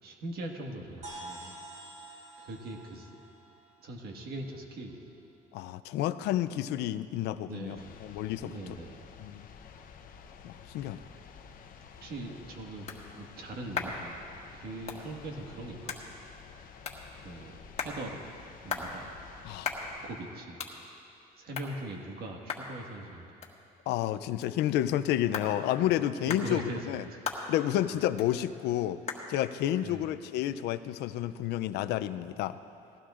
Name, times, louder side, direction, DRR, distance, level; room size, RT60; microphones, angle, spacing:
voice 1, 0.0-1.6 2.4-3.1 3.8-5.0 7.4-9.0 11.3-11.5 11.8-12.9 13.1-14.3 14.5-16.2 17.2-18.3 18.6-19.2 19.8-20.6 21.4-23.4 25.8-27.2 27.9-28.0 29.8-30.0, right 2 dB, 65° right, 2 dB, 1.7 m, -41 dB
sound 1, 1.0-4.8, right 2 dB, 40° right, 1.5 m, -48 dB
voice 2, 5.5-7.8 8.0-8.5 9.2-9.4 10.4-11.0 19.5-19.7 23.9-27.0 27.5-29.0 29.3-32.6, left 12 dB, 85° left, 12 dB, 0.5 m, -30 dB
sound 2, 7.7-20.1, left 6 dB, 55° left, 0.9 m, -51 dB
sound 3, 12.0-31.3, left 5 dB, 40° left, 1.6 m, -42 dB
19.5 x 16.0 x 2.5 m, 2.6 s
cardioid pair, 110°, 17 cm